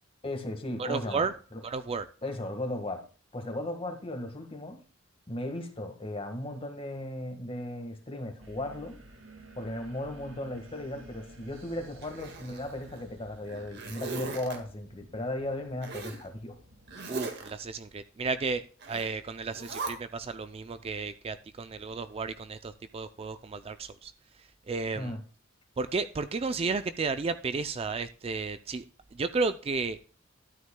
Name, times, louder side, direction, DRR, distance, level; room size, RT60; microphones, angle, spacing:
voice 1, 0.2-1.3 1.5-1.6 2.2-3.0 3.3-4.8 5.3-8.9 9.5-16.6 24.9-25.2, left 1 dB, 30° left, 1.6 m, -36 dB
voice 2, 0.8-1.3 1.6-2.1 17.1-24.1 24.7-25.1 25.8-28.8 29.1-30.0, right 4 dB, 30° right, 0.4 m, -33 dB
sound 1, 8.4-17.2, right 1 dB, 90° right, 1.9 m, -53 dB
Zipper (clothing), 12.0-13.0 13.4-14.6 15.8-16.2 16.9-17.5 18.8-19.1 19.5-19.9, right 3 dB, 60° right, 1.7 m, -39 dB
13.0 x 9.2 x 2.2 m
head